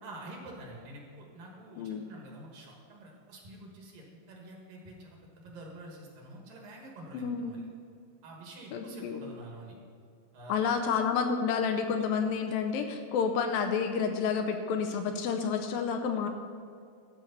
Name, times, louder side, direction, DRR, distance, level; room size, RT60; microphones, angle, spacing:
voice 1, 0.0-7.7 8.2-9.8 10.3-10.9, right 1 dB, 65° right, -1 dB, 3.1 m, -47 dB
voice 2, 7.1-7.6 8.7-9.2 10.5-16.3, left 6 dB, 80° left, 5 dB, 2.3 m, -30 dB
13.0 x 4.5 x 6.8 m, 2.3 s
omnidirectional pair, 4.3 m